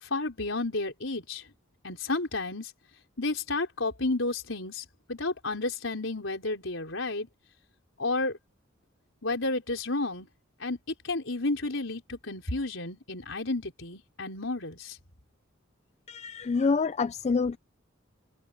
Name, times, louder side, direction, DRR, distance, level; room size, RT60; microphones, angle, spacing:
voice 1, 0.0-1.4 1.8-2.7 3.2-7.3 8.0-8.4 9.2-10.3 10.6-10.8 11.0-15.0, left 2 dB, 70° left, 5.2 m, -31 dB
voice 2, 16.1-17.6, left 4 dB, 35° left, 0.4 m, -26 dB
head